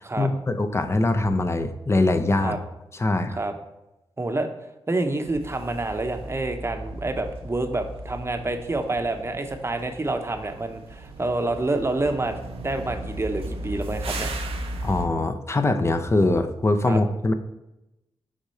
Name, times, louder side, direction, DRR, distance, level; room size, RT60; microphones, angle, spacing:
voice 1, 0.2-2.6 3.0-3.4 14.8-17.3, left 2 dB, 25° left, 9 dB, 0.6 m, -22 dB
voice 2, 4.2-4.5 4.9-14.3 16.9-17.0, right 2 dB, 25° right, 6 dB, 0.8 m, -28 dB
sound 1, 5.2-15.1, right 1 dB, 75° right, 0.7 m, -36 dB
6.4 x 3.6 x 4.3 m, 0.92 s
cardioid pair, 60°, 10 cm